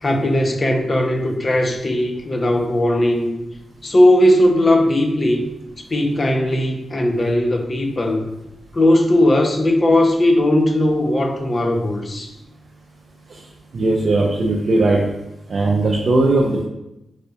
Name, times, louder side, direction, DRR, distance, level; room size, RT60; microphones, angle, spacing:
voice 1, 0.0-3.3 3.8-5.5 5.9-8.3 8.7-12.3, left 1 dB, 40° left, 3 dB, 0.5 m, -17 dB
voice 2, 13.7-15.0 15.5-16.6, right 2 dB, 55° right, -2 dB, 0.5 m, -18 dB
4.1 x 2.2 x 2.7 m, 0.91 s
cardioid pair, 75°, 0 cm